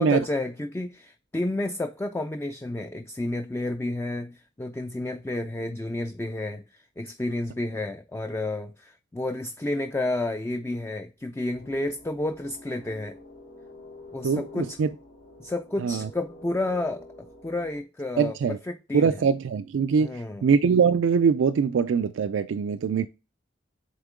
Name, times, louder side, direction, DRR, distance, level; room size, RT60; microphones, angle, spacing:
voice 1, 0.0-13.2 14.1-14.8 15.4-18.3 18.7-19.1 20.0-20.5, left 2 dB, 15° left, 0.3 m, -31 dB
sound 1, 11.5-17.8, left 2 dB, 80° left, 2.6 m, -48 dB
voice 2, 14.2-14.9 15.8-16.1 18.2-18.6 18.9-23.1, right 6 dB, 80° right, 0.4 m, -23 dB
8.2 x 3.6 x 3.6 m
head